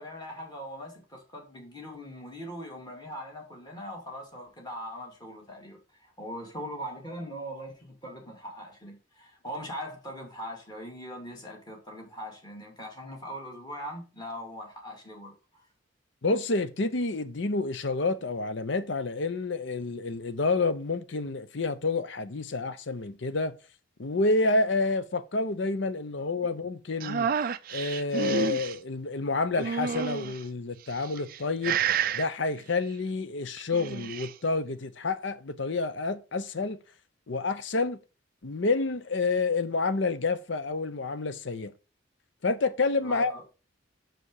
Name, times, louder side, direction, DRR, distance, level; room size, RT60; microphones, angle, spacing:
voice 1, 0.0-15.6 43.0-43.4, equal, 20° left, 2.1 m, -41 dB
voice 2, 16.2-23.5 24.0-27.3 27.7-31.8 32.1-36.8 37.3-38.0 38.4-41.7 42.4-43.3, left 3 dB, 60° left, 0.7 m, -29 dB
sound 1, 27.0-28.8 29.6-30.4 31.1-31.4 31.6-32.3 33.6-34.3, right 7 dB, 45° right, 0.3 m, -29 dB
6.1 x 5.0 x 4.8 m
head